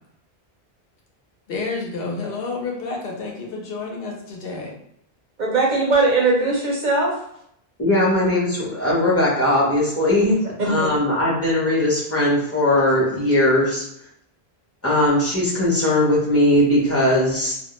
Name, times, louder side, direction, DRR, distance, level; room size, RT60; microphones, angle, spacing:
voice 1, 1.5-4.7, left 3 dB, 70° left, 0 dB, 0.8 m, -29 dB
voice 2, 5.4-7.1 10.6-10.9, right 3 dB, 55° right, -3 dB, 0.6 m, -19 dB
voice 3, 7.8-13.8 14.8-17.5, left 1 dB, 15° left, -7 dB, 0.7 m, -19 dB
2.2 x 2.1 x 2.9 m, 0.73 s
omnidirectional pair, 1.0 m